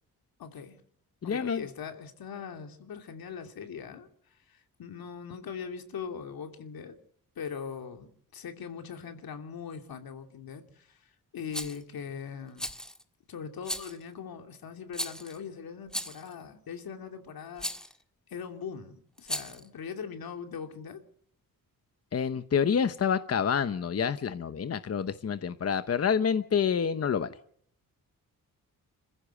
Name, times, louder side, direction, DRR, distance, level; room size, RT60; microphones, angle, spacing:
voice 1, 0.4-0.8 1.2-4.1 4.5-6.9 7.4-12.7 13.3-17.7 18.3-21.0, left 6 dB, 85° left, 6 dB, 2.9 m, -41 dB
voice 2, 1.2-1.7 22.1-27.4, left 7 dB, 45° left, 11 dB, 0.9 m, -28 dB
Rattle, 11.5-11.8 12.6-13.0 13.6-14.0 14.9-15.4 15.9-16.3 17.6-17.9 19.2-19.7, equal, ahead, 1.6 m, -36 dB
27.0 x 15.5 x 8.3 m, 0.64 s
wide cardioid pair, 140°, 35 cm